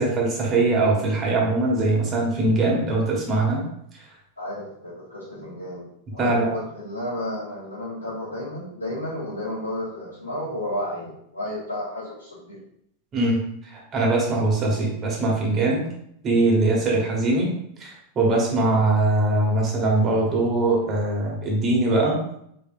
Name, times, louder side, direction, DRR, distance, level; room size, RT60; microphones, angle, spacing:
voice 1, 0.0-3.6 6.2-6.6 13.1-15.9 16.2-17.5 17.8-17.9 18.1-22.2, right 2 dB, 30° right, -2 dB, 1.6 m, -21 dB
voice 2, 4.4-12.6 18.6-18.8, left 1 dB, 85° left, -11 dB, 1.9 m, -32 dB
5.0 x 4.2 x 2.5 m, 0.72 s
figure-of-eight pair, 90°, 0 cm